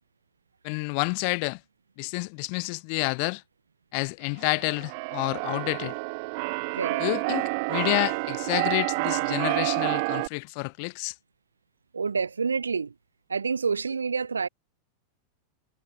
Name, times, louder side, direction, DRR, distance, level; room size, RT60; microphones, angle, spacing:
voice 1, 0.6-1.6 2.0-3.4 3.9-6.0 7.0-11.1, left 39 dB, 45° left, 0.7 m, -29 dB
Keyboard (musical), 4.4-10.3, right 30 dB, 45° right, 0.3 m, -29 dB
voice 2, 11.9-12.9 13.3-14.5, right 5 dB, 75° right, 0.9 m, -28 dB
figure-of-eight pair, 90°, 0 cm